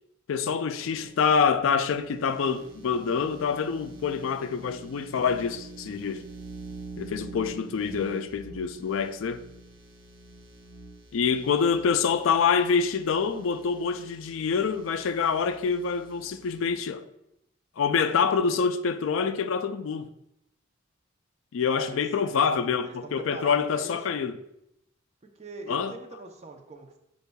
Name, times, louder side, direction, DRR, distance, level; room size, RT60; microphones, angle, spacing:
voice 1, 0.3-6.2 7.0-9.4 11.1-17.1 17.8-20.1 21.5-24.3 25.7-25.9, left 6 dB, 80° left, 0.4 m, -26 dB
sound 1, 0.8-16.6, right 3 dB, 85° right, 0.9 m, -46 dB
voice 2, 21.7-24.2 25.2-27.0, right 2 dB, 35° right, 0.6 m, -43 dB
8.1 x 5.2 x 2.2 m
head